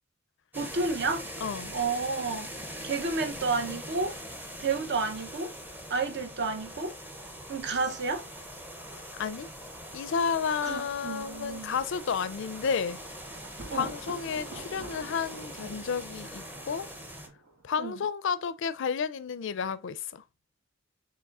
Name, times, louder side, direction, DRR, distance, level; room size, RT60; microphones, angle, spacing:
sound 1, 0.5-17.3, equal, 10° right, 0.6 m, -42 dB
voice 1, 0.6-1.3 1.7-2.5 2.8-4.2 4.6-5.5 5.9-7.0 7.5-8.3 10.6-11.7 13.7-13.9 17.8-17.9, right 4 dB, 55° right, 0.7 m, -31 dB
voice 2, 1.4-1.8 9.1-9.5 9.9-13.0 13.7-16.9 17.6-20.2, left 6 dB, 60° left, 0.4 m, -31 dB
Thunder, 12.0-17.8, right 2 dB, 90° right, 1.8 m, -47 dB
7.1 x 3.1 x 2.4 m
head